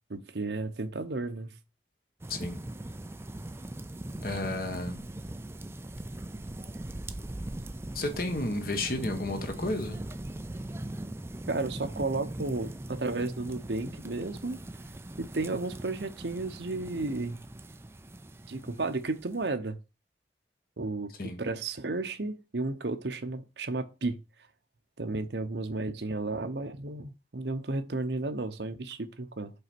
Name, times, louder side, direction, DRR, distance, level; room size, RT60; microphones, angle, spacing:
voice 1, 0.1-1.5 11.5-14.6 15.2-17.4 18.5-19.8 20.8-24.2 25.0-29.5, right 3 dB, 75° right, 0.9 m, -33 dB
sound 1, 2.2-19.5, right 1 dB, 15° right, 0.4 m, -40 dB
voice 2, 4.2-5.0 7.9-10.0 21.2-21.4, left 2 dB, 55° left, 1.3 m, -32 dB
5.6 x 4.2 x 6.0 m
head